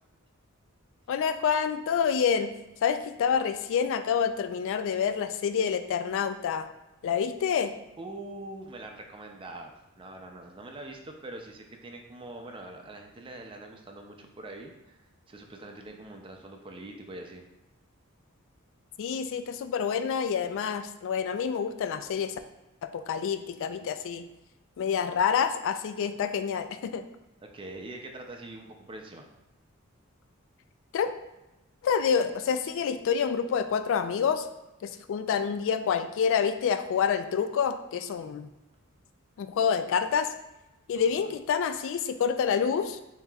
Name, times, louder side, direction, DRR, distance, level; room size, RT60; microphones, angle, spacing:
voice 1, 1.1-2.5 2.8-6.7 7.0-7.7 19.0-22.3 22.8-24.2 24.8-27.0 30.9-31.1 31.8-34.5 34.8-38.5 39.4-40.3 40.9-43.0, left 7 dB, 65° left, 9 dB, 0.3 m, -27 dB
voice 2, 8.0-17.5 27.4-29.3 40.9-41.3, right 2 dB, 25° right, 3 dB, 0.5 m, -44 dB
7.1 x 2.8 x 2.3 m, 0.96 s
head